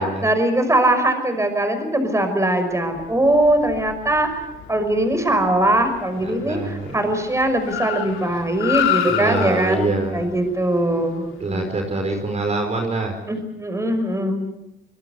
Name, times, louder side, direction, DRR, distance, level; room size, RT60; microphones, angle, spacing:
voice 1, 0.0-11.7 13.3-14.4, right 1 dB, 15° right, 7 dB, 5.9 m, -21 dB
Car, 2.8-12.4, left 11 dB, 85° left, 3.3 m, -31 dB
voice 2, 6.2-7.0 9.1-10.2 11.4-13.1, right 2 dB, 35° right, 4 dB, 4.8 m, -25 dB
26.0 x 21.0 x 8.2 m, 0.88 s
cardioid pair, 90°, 20 cm